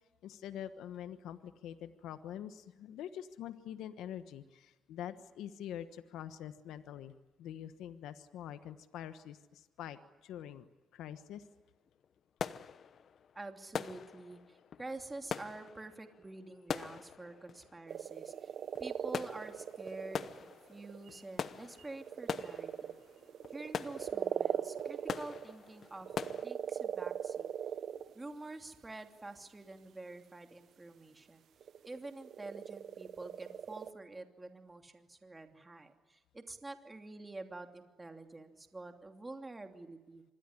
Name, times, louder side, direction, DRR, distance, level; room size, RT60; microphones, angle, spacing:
voice 1, 0.2-7.1 7.4-11.5, left 10 dB, 85° left, 11 dB, 1.2 m, -45 dB
sound 1, 11.4-11.5 11.9-26.5, left 7 dB, 55° left, 1.0 m, -43 dB
voice 2, 13.3-18.5 18.8-23.0 23.5-27.5 28.1-31.4 31.8-40.2, right 2 dB, 20° right, 5 dB, 2.8 m, -48 dB
sound 2, 17.9-21.2 21.8-28.1 29.3-29.4 31.6-33.9, right 9 dB, 65° right, 1.1 m, -40 dB
26.0 x 21.0 x 9.9 m, 1.2 s
cardioid pair, 90°, 0 cm